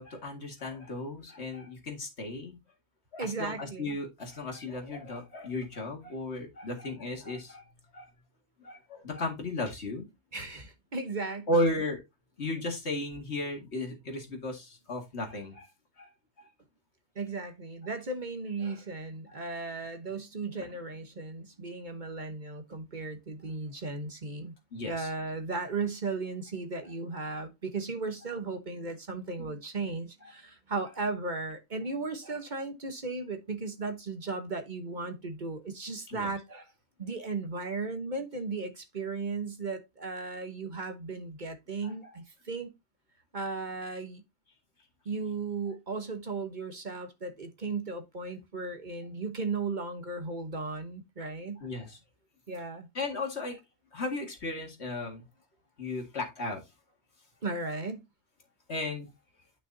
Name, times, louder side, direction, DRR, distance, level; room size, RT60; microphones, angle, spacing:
voice 1, 0.0-2.6 3.1-7.6 7.9-8.1 8.6-10.1 11.5-12.0 12.4-15.7 16.0-16.1 24.7-25.1 29.4-29.5 36.1-36.3 41.8-42.1 51.6-52.0 52.9-53.6 53.9-55.3 55.8-56.6 58.7-59.1, left 1 dB, 70° left, 2.3 m, -35 dB
voice 2, 3.2-4.0 10.3-11.7 17.1-24.5 24.8-36.7 37.0-42.7 43.3-44.2 45.0-51.6 52.5-52.9 57.4-58.0, right 3 dB, 45° right, 1.2 m, -36 dB
9.7 x 5.8 x 2.7 m
omnidirectional pair, 1.2 m